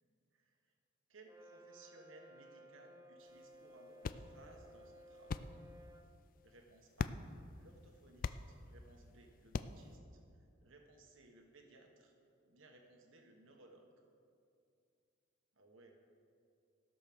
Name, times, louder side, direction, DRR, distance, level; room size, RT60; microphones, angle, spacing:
voice 1, 1.1-5.6 6.4-7.1 7.5-10.2 10.6-12.1 12.4-13.9 15.6-15.9, right 2 dB, 70° right, 3 dB, 1.3 m, -62 dB
Brass instrument, 1.2-6.1, equal, 15° right, 0.6 m, -59 dB
sound 1, 3.2-10.0, left 4 dB, 40° left, 0.3 m, -45 dB
15.5 x 6.6 x 6.1 m, 2.4 s
head